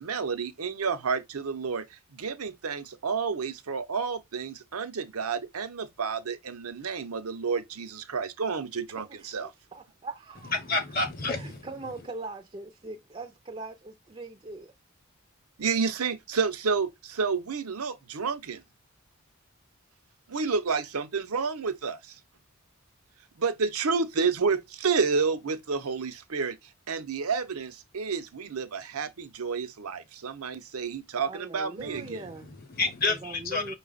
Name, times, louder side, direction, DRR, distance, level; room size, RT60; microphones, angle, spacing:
voice 1, 0.0-9.5 15.6-18.6 20.3-22.2 23.4-26.6 26.9-32.2, right 5 dB, 90° right, 0.7 m, -30 dB
voice 2, 9.0-10.6 11.3-14.7 31.2-32.5 33.0-33.7, right 3 dB, 25° right, 0.4 m, -41 dB
voice 3, 10.5-11.6 32.0-32.1 32.7-33.7, left 3 dB, 40° left, 0.8 m, -29 dB
5.7 x 2.3 x 3.9 m
head